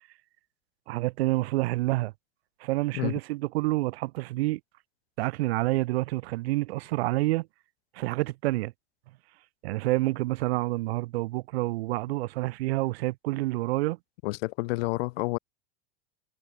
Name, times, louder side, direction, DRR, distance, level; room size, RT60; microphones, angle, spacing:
voice 1, 0.9-2.1 2.6-4.6 5.2-7.5 7.9-8.7 9.6-14.0, right 19 dB, 75° right, 0.8 m, -28 dB
voice 2, 14.2-15.4, left 23 dB, 65° left, 3.8 m, -29 dB
supercardioid pair, 135°, 31 cm